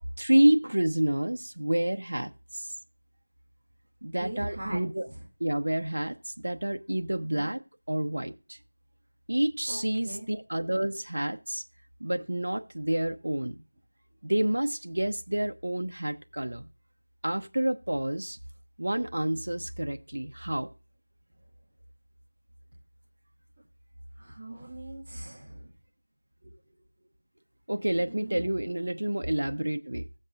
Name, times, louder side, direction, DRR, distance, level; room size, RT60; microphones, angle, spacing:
voice 1, 0.0-2.7 4.0-5.1 5.4-7.6 7.9-8.6 9.3-11.6 12.0-13.6 14.2-16.6 17.2-18.4 18.8-20.7 27.7-30.1, right 1 dB, 75° right, 0.9 m, -28 dB
voice 2, 4.2-4.8 7.3-7.5 9.7-10.3 24.2-25.7 26.4-26.5 28.0-28.4, right 1 dB, 25° right, 1.9 m, -40 dB
15.5 x 7.7 x 2.6 m
figure-of-eight pair, 175°, 0 cm